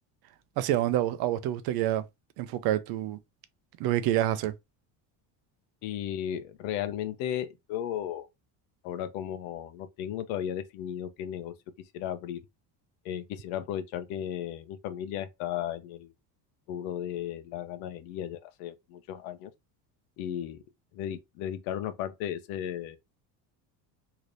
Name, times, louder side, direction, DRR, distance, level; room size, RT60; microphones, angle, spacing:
voice 1, 0.6-2.0 2.4-3.2 3.8-4.5, right 13 dB, 55° right, 0.5 m, -27 dB
voice 2, 5.8-8.3 8.8-11.5 11.9-12.4 13.0-16.1 16.7-19.5 20.2-20.6 20.9-23.0, left 10 dB, 85° left, 0.7 m, -35 dB
3.2 x 2.9 x 2.5 m
cardioid pair, 140°, 46 cm